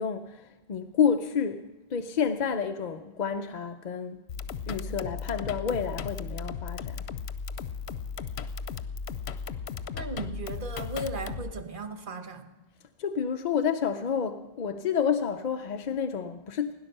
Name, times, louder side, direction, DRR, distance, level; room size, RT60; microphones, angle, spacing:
voice 1, 0.0-4.2 4.7-7.1 13.0-16.7, left 7 dB, 50° left, 0.6 m, -29 dB
sound 1, 4.3-11.5, left 6 dB, 85° left, 0.9 m, -36 dB
voice 2, 9.9-12.5, right 2 dB, 55° right, 1.2 m, -36 dB
17.0 x 10.5 x 6.6 m
omnidirectional pair, 1.1 m